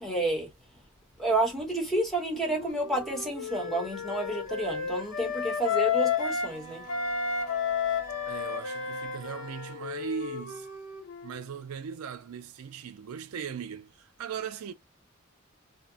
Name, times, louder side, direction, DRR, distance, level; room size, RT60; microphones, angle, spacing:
voice 1, 0.0-0.8 1.2-6.9, right 2 dB, ahead, 0.9 m, -30 dB
Wind instrument woodwind instrument, 2.2-6.6 6.9-11.4, left 6 dB, 85° left, 0.8 m, -32 dB
Wind instrument woodwind instrument 2, 3.5-9.9 10.2-10.8, left 4 dB, 35° left, 0.5 m, -50 dB
Wind instrument woodwind instrument 3, 6.5-9.9, right 4 dB, 20° right, 0.6 m, -48 dB
voice 2, 8.3-10.7 11.2-14.7, right 7 dB, 85° right, 0.4 m, -38 dB
2.7 x 2.1 x 2.6 m
head